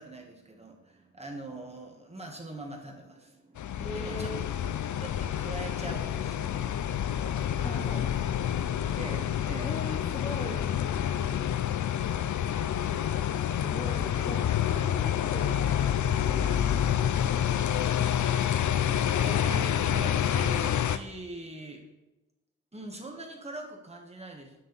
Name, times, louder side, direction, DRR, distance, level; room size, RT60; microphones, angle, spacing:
voice 1, 0.0-4.4 5.0-7.6 9.0-9.9 14.7-14.9 19.1-21.9 22.7-24.6, right 2 dB, 20° right, 1 dB, 1.4 m, -43 dB
sound 1, 3.6-21.0, left 10 dB, 70° left, 0.5 m, -28 dB
voice 2, 3.8-4.5 7.6-9.0 9.6-10.6 13.5-18.5, left 1 dB, 20° left, 1 dB, 0.8 m, -42 dB
9.4 x 6.4 x 4.0 m, 1.0 s
wide cardioid pair, 140°, 30 cm